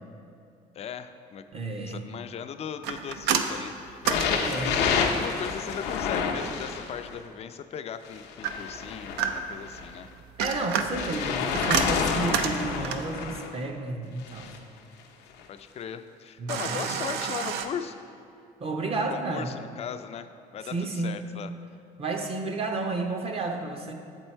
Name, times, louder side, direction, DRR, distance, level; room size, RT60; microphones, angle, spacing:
voice 1, 0.7-4.3 4.9-10.1 15.5-18.0 18.9-21.5, left 8 dB, 40° left, 9 dB, 0.3 m, -38 dB
voice 2, 1.5-2.0 4.3-4.7 10.4-14.5 16.4-16.9 18.6-19.5 20.7-21.2 22.0-23.9, right 3 dB, 35° right, 3 dB, 0.7 m, -31 dB
sound 1, 2.8-5.1 8.4-9.7 10.2-13.2 16.5-17.7, right 7 dB, 80° right, 0.5 m, -30 dB
sound 2, 4.0-7.2 8.1-9.9 10.9-13.5 14.2-14.6 15.4-15.5, left 6 dB, 90° left, 0.6 m, -29 dB
7.2 x 4.5 x 4.4 m, 2.5 s
cardioid pair, 110°, 17 cm